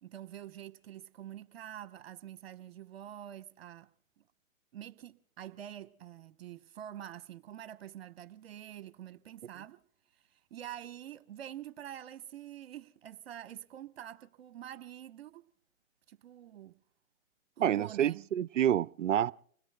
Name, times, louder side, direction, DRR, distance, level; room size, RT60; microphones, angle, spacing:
voice 1, 0.0-3.9 4.2-4.3 4.7-9.8 10.1-15.4 16.1-16.7 17.6-18.3, right 11 dB, 45° right, 1.1 m, -46 dB
voice 2, 17.6-19.3, right 10 dB, 65° right, 0.6 m, -28 dB
29.5 x 21.0 x 2.2 m
hypercardioid pair, 140°, 41 cm